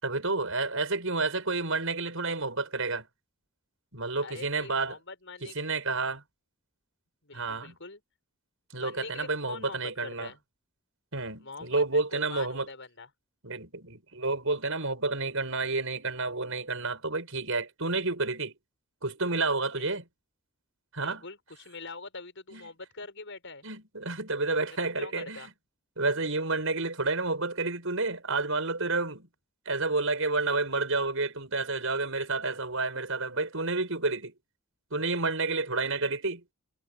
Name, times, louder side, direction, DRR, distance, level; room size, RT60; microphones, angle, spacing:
voice 1, 0.0-3.1 3.9-5.0 5.4-6.2 7.3-7.7 8.7-10.3 11.1-12.7 13.4-18.5 19.0-20.1 20.9-21.2 22.5-22.7 23.6-25.5 26.0-29.3 29.7-34.3 34.9-36.4, right 3 dB, 65° right, 7.8 m, -30 dB
voice 2, 4.2-5.6 7.2-8.0 8.8-10.4 11.4-13.1 19.7-19.9 21.0-23.6 24.5-25.5, left 3 dB, 60° left, 7.6 m, -44 dB
head